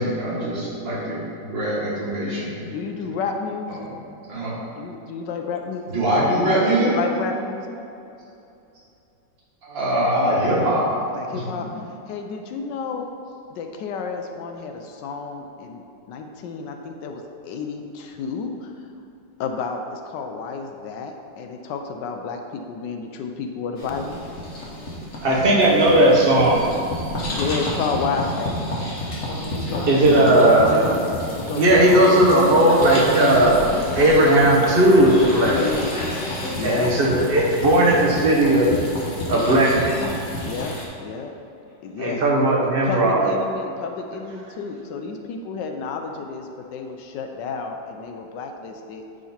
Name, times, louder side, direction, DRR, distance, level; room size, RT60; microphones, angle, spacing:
voice 1, 0.0-2.7 3.8-3.9 4.3-4.5 5.9-6.9 9.6-10.8 11.3-11.4 30.0-30.4, right 1 dB, 75° right, -7 dB, 2.6 m, -23 dB
voice 2, 2.7-3.9 4.8-5.9 6.3-7.7 11.1-11.7 12.1-13.1 13.5-18.7 19.4-24.1 27.3-28.6 29.6-32.6 35.5-36.0 36.5-36.9 39.3-39.6 40.4-41.3 41.8-42.2 42.8-49.0, left 5 dB, 75° left, 4 dB, 1.2 m, -31 dB
sound 1, 23.8-40.9, left 1 dB, 45° left, 1.4 m, -29 dB
voice 3, 25.2-26.6 29.9-30.9 31.5-33.6 33.9-35.6 35.9-36.2 36.6-38.7 39.3-40.1 42.0-43.3, right 1 dB, 35° right, -2 dB, 1.0 m, -17 dB
9.3 x 3.8 x 4.3 m, 2.7 s
omnidirectional pair, 2.0 m